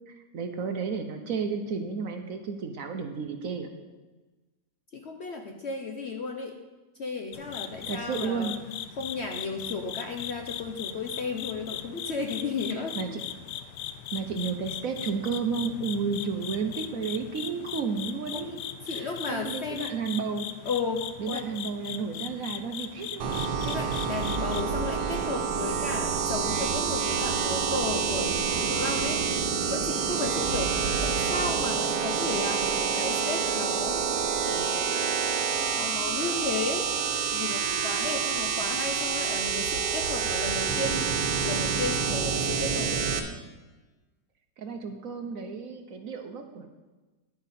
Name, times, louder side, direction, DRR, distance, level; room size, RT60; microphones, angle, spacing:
voice 1, 0.1-3.7 7.9-8.5 12.7-13.2 14.1-18.6 18.9-20.5 21.2-23.3 44.6-46.7, right 5 dB, 60° right, 6 dB, 1.1 m, -32 dB
voice 2, 4.9-6.6 7.0-8.5 9.0-13.0 18.8-19.9 20.6-21.5 23.6-29.2 29.7-30.7 31.0-34.0 34.4-34.9 35.6-36.9 37.3-43.2, left 4 dB, 55° left, 3 dB, 0.8 m, -34 dB
sound 1, 7.3-24.6, left 10 dB, 80° left, 1.2 m, -39 dB
sound 2, 23.2-43.2, right 6 dB, 80° right, 1.6 m, -28 dB
10.5 x 8.5 x 4.2 m, 1.2 s
omnidirectional pair, 1.8 m